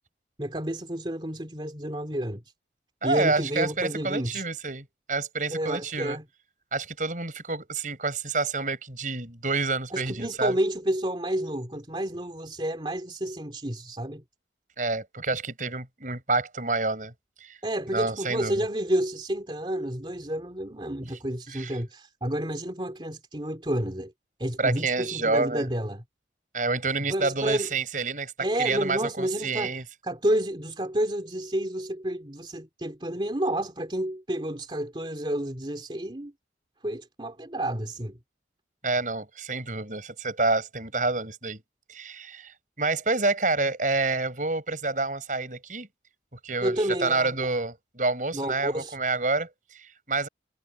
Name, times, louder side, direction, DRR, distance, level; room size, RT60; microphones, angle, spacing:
voice 1, 0.4-2.4 3.0-4.4 5.5-6.2 9.9-14.2 17.6-24.1 24.4-26.0 27.1-27.7 28.4-29.7 30.0-36.3 36.8-38.2 46.6-47.5 48.3-49.0, right 1 dB, 25° right, 3.0 m, -30 dB
voice 2, 3.0-6.2 6.7-10.6 14.8-17.1 17.4-17.6 17.9-18.7 21.0-21.1 21.5-21.8 24.6-25.7 26.5-28.3 28.6-29.8 38.8-41.6 41.9-45.9 46.3-50.3, right 3 dB, 45° right, 6.4 m, -28 dB
head